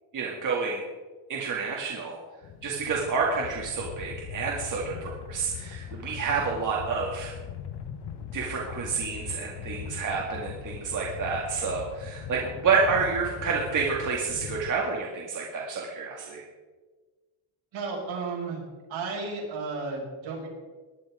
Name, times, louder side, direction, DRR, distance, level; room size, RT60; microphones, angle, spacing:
voice 1, 0.1-0.8 1.3-2.2 2.6-7.3 8.3-16.4, right 5 dB, 40° right, -2 dB, 2.1 m, -29 dB
sound 1, 2.4-14.7, left 8 dB, 60° left, 1.2 m, -40 dB
voice 2, 17.7-18.6 18.9-20.5, right 4 dB, 70° right, -2 dB, 6.0 m, -33 dB
19.0 x 11.0 x 4.9 m, 1.3 s
cardioid pair, 170°, 47 cm